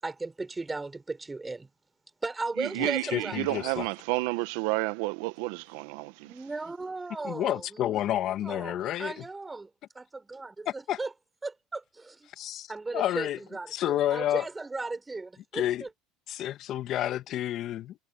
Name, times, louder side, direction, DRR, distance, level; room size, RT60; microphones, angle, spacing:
voice 1, 0.0-1.7 2.2-3.7 6.2-11.1 11.4-12.3 12.7-15.9, right 3 dB, 15° right, 4.8 m, -37 dB
voice 2, 2.6-6.3, right 22 dB, 75° right, 1.0 m, -31 dB
voice 3, 3.1-3.9 7.3-9.1 10.9-11.0 12.4-13.4 13.7-14.4 15.5-15.8 16.3-17.9, left 12 dB, 55° left, 1.3 m, -30 dB
supercardioid pair, 95°, 0 cm